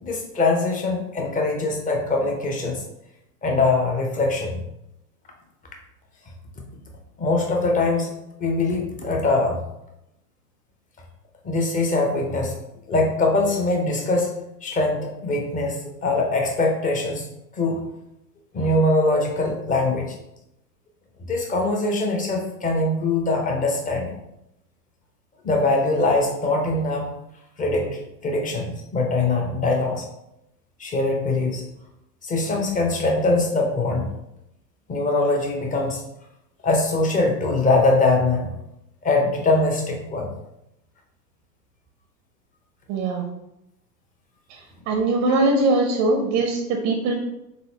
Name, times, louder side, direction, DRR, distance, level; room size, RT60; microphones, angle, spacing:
voice 1, 0.0-2.8 3.4-4.6 7.2-8.1 8.4-9.6 11.4-12.6 12.9-14.3 14.6-17.3 17.5-17.8 18.5-20.1 21.3-24.1 25.4-27.1 27.6-30.1 30.8-31.7 32.2-34.1 34.9-36.0 36.6-38.5 39.0-40.4, left 2 dB, 15° left, 1 dB, 0.7 m, -22 dB
voice 2, 42.9-43.2 44.5-44.6 44.9-47.1, right 2 dB, 30° right, 3 dB, 0.6 m, -21 dB
4.1 x 3.7 x 2.8 m, 0.87 s
figure-of-eight pair, 90°, 48 cm